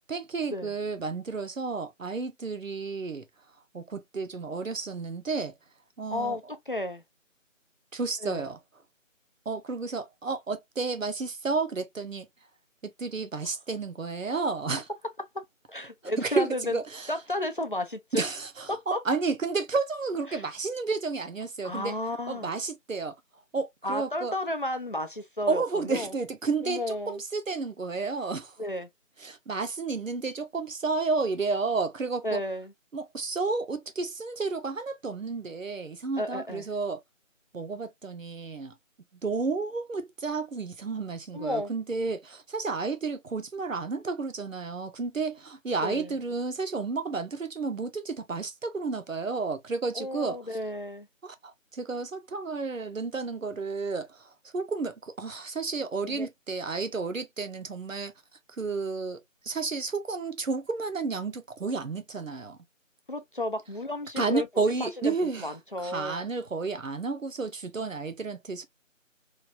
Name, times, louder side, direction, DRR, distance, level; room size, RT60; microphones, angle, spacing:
voice 1, 0.1-3.2 3.7-5.5 6.0-6.4 7.9-8.6 9.5-12.3 12.8-14.9 16.2-17.1 18.1-21.9 22.3-23.1 23.5-24.3 25.5-28.5 29.2-32.4 32.9-37.0 37.5-38.7 39.2-50.4 51.2-58.1 58.6-62.6 64.2-68.6, right 4 dB, 75° right, 0.9 m, -31 dB
voice 2, 6.1-7.0 8.2-8.4 15.3-15.4 15.7-16.8 17.1-18.0 18.7-19.0 20.3-20.4 21.6-22.5 23.8-26.1 26.6-27.2 28.6-28.9 32.2-32.7 36.2-36.7 41.3-41.7 45.8-46.2 49.9-51.1 56.0-56.3 63.1-64.5 64.8-66.3, left 1 dB, 40° left, 0.5 m, -33 dB
3.1 x 2.6 x 2.4 m
figure-of-eight pair, 165°, 40 cm